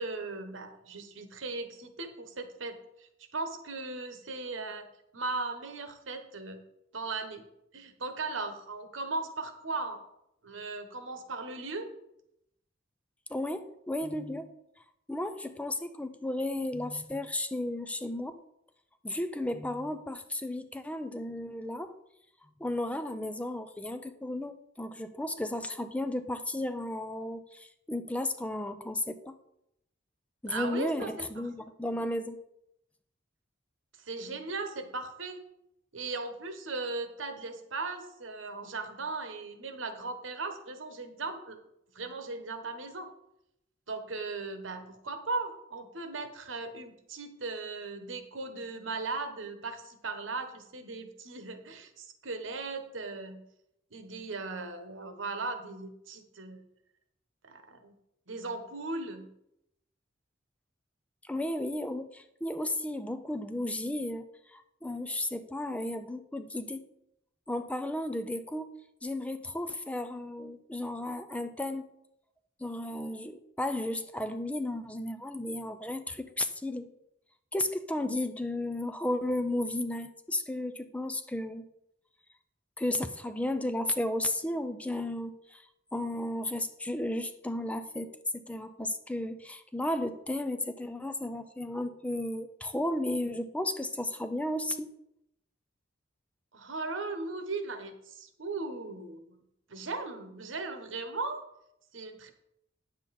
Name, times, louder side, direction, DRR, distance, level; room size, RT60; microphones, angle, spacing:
voice 1, 0.0-4.9 5.1-6.6 6.9-7.4 7.7-10.0 10.4-11.9 30.5-31.2 31.6-31.7 34.0-35.4 35.9-41.6 41.9-43.1 43.9-53.4 53.9-56.6 57.4-57.9 58.3-59.3 96.5-99.4 99.7-101.4 101.9-102.3, right 3 dB, 80° right, 7 dB, 1.2 m, -38 dB
voice 2, 13.3-14.5 15.1-18.4 19.0-22.0 22.6-29.4 30.4-32.4 61.2-64.2 64.5-66.9 67.5-68.7 69.0-71.9 72.6-76.9 77.5-81.7 82.8-85.6 85.9-94.9, left 1 dB, 5° left, 9 dB, 0.4 m, -34 dB
9.4 x 7.4 x 4.2 m, 0.81 s
head